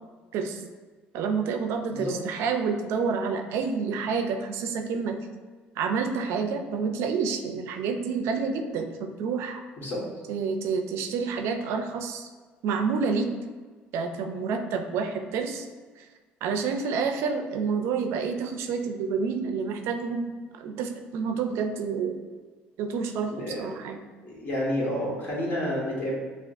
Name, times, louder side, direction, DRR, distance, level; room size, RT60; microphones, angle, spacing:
voice 1, 1.1-5.2 5.8-9.6 10.3-12.3 12.6-13.3 13.9-15.7 16.0-16.1 16.4-22.2 22.8-24.0, right 5 dB, 75° right, 6 dB, 0.4 m, -29 dB
voice 2, 9.8-10.1 23.3-23.7 24.2-26.1, equal, 50° left, -4 dB, 1.5 m, -30 dB
5.7 x 2.4 x 2.5 m, 1.4 s
supercardioid pair, 75°, 5 cm